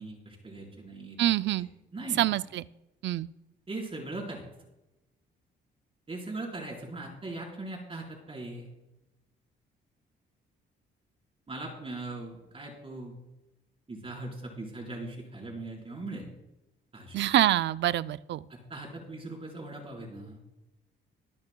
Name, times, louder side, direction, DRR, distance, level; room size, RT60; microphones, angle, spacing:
voice 1, 0.0-1.2 1.9-2.3 3.7-4.5 6.1-8.7 11.5-13.1 13.9-16.3 16.9-17.2 18.5-20.4, right 2 dB, 30° right, -1 dB, 4.3 m, -40 dB
voice 2, 1.2-1.7 2.2-2.7 3.0-3.3 17.1-18.5, right 13 dB, 65° right, 16 dB, 0.5 m, -26 dB
23.5 x 10.5 x 2.3 m, 0.97 s
cardioid pair, 90°, 20 cm